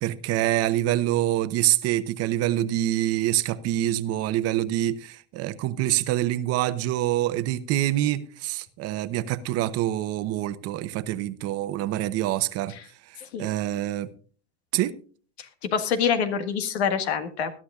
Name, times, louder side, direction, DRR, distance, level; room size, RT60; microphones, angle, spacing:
voice 1, 0.0-12.7 13.1-14.1 14.7-14.9, right 14 dB, 50° right, 0.9 m, -26 dB
voice 2, 15.4-17.5, left 7 dB, 85° left, 1.8 m, -26 dB
21.0 x 11.5 x 2.4 m
supercardioid pair, 110°, 32 cm